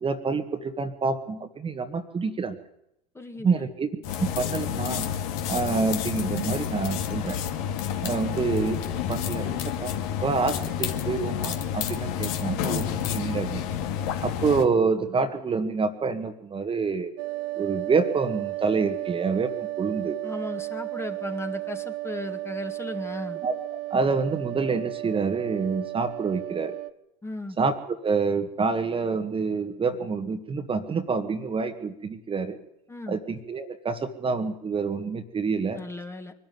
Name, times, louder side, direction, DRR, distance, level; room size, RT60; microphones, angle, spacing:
voice 1, 0.0-2.6 3.4-3.9 4.2-5.1 5.5-7.4 8.0-9.9 10.2-13.6 14.2-17.1 17.6-20.2 23.4-23.5 23.9-26.7 27.6-27.7 28.0-32.6 33.1-35.8, right 4 dB, 25° right, 7 dB, 1.8 m, -27 dB
voice 2, 3.1-3.7 20.2-23.4 27.2-27.6 32.9-33.2 35.7-36.3, left 2 dB, 10° left, 6 dB, 2.0 m, -36 dB
sound 1, 4.0-14.6, left 9 dB, 60° left, 2.2 m, -29 dB
sound 2, 17.2-26.9, right 19 dB, 60° right, 0.9 m, -34 dB
23.0 x 13.0 x 9.5 m, 0.82 s
hypercardioid pair, 80°, 21 cm